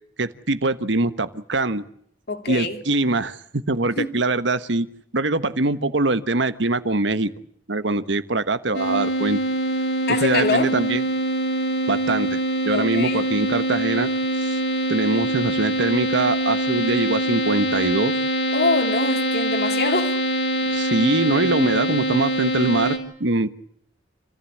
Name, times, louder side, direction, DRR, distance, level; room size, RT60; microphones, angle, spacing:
voice 1, 0.2-1.8 2.5-4.9 5.1-7.3 7.7-9.4 10.2-11.0 11.9-12.4 12.6-14.1 14.4-14.6 14.9-18.1 20.7-23.5, right 2 dB, 75° right, 1.3 m, -23 dB
voice 2, 2.3-2.8 4.0-4.1 10.1-10.7 12.7-13.2 18.5-20.1, left 3 dB, 55° left, 2.9 m, -24 dB
sound 1, 8.7-23.0, right 1 dB, 70° left, 5.2 m, -24 dB
28.5 x 15.0 x 8.6 m
head